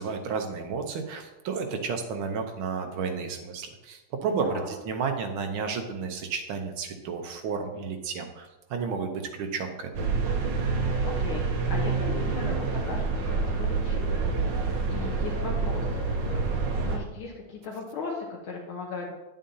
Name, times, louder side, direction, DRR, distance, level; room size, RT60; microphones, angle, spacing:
voice 1, 0.0-10.1, right 5 dB, 85° right, 5 dB, 1.7 m, -32 dB
voice 2, 4.3-4.7 11.0-16.5 16.8-19.1, left 4 dB, 85° left, -1 dB, 1.8 m, -38 dB
sound 1, 9.9-17.0, right 4 dB, 65° right, 1.5 m, -27 dB
10.5 x 7.4 x 2.8 m, 1.1 s
omnidirectional pair, 2.3 m